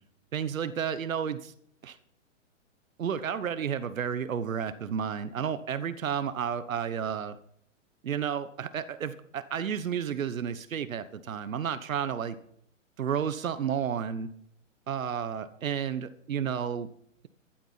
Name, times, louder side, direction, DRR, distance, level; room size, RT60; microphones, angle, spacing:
voice 1, 0.3-1.5 1.8-2.0 3.0-7.4 8.0-12.4 13.0-14.3 14.9-16.9, right 8 dB, 90° right, 13 dB, 1.4 m, -31 dB
13.5 x 12.0 x 5.8 m, 0.66 s
hypercardioid pair, 170°, 39 cm